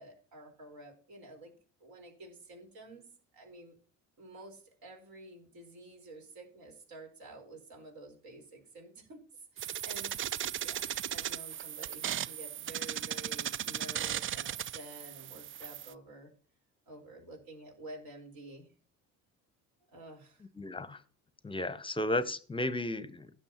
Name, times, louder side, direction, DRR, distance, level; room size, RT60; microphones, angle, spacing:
voice 1, 0.0-1.5 1.8-3.8 4.2-10.1 10.6-16.3 16.9-18.7 19.9-20.4, right 2 dB, 60° right, 2 dB, 4.4 m, -50 dB
sound 1, 9.6-15.9, right 11 dB, 35° right, 0.4 m, -37 dB
voice 2, 20.6-21.0 21.4-23.3, left 1 dB, 15° left, 15 dB, 0.9 m, -34 dB
16.0 x 6.9 x 3.0 m, 0.41 s
hypercardioid pair, 60°, 39 cm